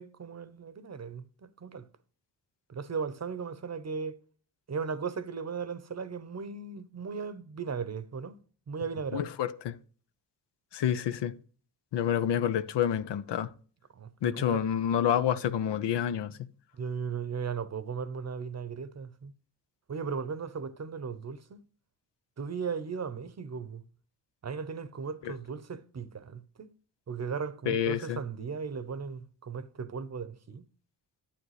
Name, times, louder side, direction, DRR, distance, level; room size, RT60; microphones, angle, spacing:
voice 1, 0.0-1.9 2.7-4.2 4.7-8.4 8.7-9.3 13.9-14.6 16.7-19.3 19.9-21.6 22.4-23.8 24.4-26.7 27.1-30.7, right 5 dB, 40° right, 0.8 m, -37 dB
voice 2, 9.1-9.8 10.7-11.3 11.9-13.5 14.2-16.5 27.7-28.2, left 9 dB, 75° left, 0.7 m, -28 dB
11.5 x 8.5 x 3.2 m
cardioid pair, 60°, 42 cm